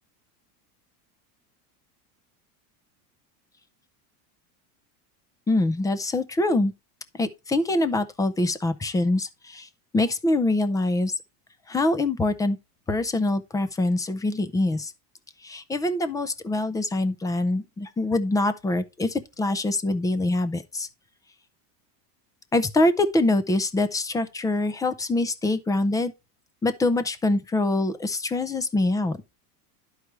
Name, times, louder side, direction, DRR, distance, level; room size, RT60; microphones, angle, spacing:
voice 1, 5.5-6.7 7.2-9.7 9.9-11.1 11.7-12.6 12.9-14.9 15.4-20.9 22.5-26.1 26.6-29.2, left 2 dB, 10° left, 0.4 m, -24 dB
11.5 x 4.8 x 3.1 m
supercardioid pair, 135°, 46 cm